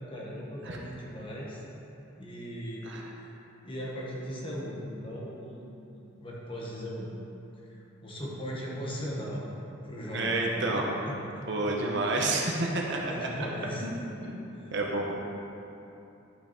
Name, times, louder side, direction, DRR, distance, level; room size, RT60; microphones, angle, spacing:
voice 1, 0.0-1.6 2.2-2.8 3.2-3.3 3.6-5.7 5.9-7.1 7.6-9.5 9.8-10.4 10.7-11.1 13.1-13.9 14.5-15.1, equal, 25° left, -5 dB, 1.6 m, -38 dB
voice 2, 10.1-10.9 11.5-13.3 13.8-14.4 14.7-15.1, right 2 dB, 65° right, -1 dB, 1.2 m, -30 dB
11.0 x 5.8 x 4.6 m, 2.9 s
head